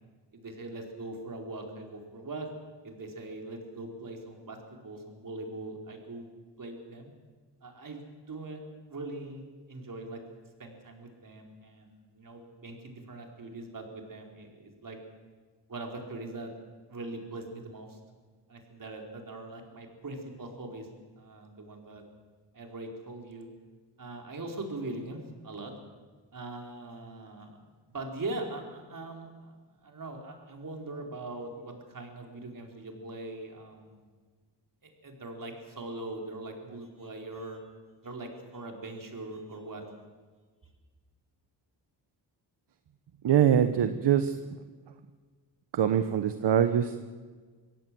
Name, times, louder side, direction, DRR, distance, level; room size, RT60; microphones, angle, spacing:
voice 1, 0.3-2.5 2.8-4.6 4.8-6.3 6.6-7.1 7.6-8.6 8.9-9.4 9.7-10.2 10.6-15.0 15.7-16.5 16.9-18.0 18.5-20.9 21.2-22.0 22.5-23.5 24.0-25.7 26.3-27.6 27.9-29.5 29.8-34.1 34.8-37.6 38.0-39.8, right 2 dB, 50° right, 2 dB, 4.6 m, -41 dB
voice 2, 43.2-44.3 45.7-47.0, right 9 dB, 70° right, 10 dB, 1.1 m, -23 dB
23.5 x 17.0 x 7.7 m, 1.4 s
cardioid pair, 90°, 43 cm